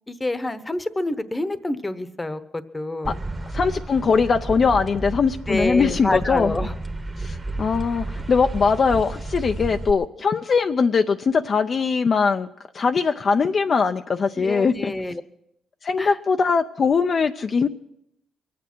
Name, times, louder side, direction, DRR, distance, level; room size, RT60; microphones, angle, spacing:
voice 1, 0.1-3.2 5.5-6.7 14.4-15.2 16.0-16.2, left 1 dB, 15° left, 12 dB, 0.9 m, -27 dB
sound 1, 3.0-9.9, right 2 dB, 25° right, 1.2 m, -31 dB
voice 2, 3.5-6.5 7.2-12.5 12.7-14.9 15.8-17.7, left 5 dB, 45° left, 6 dB, 0.5 m, -21 dB
23.0 x 8.5 x 6.1 m, 0.80 s
cardioid pair, 90°, 0 cm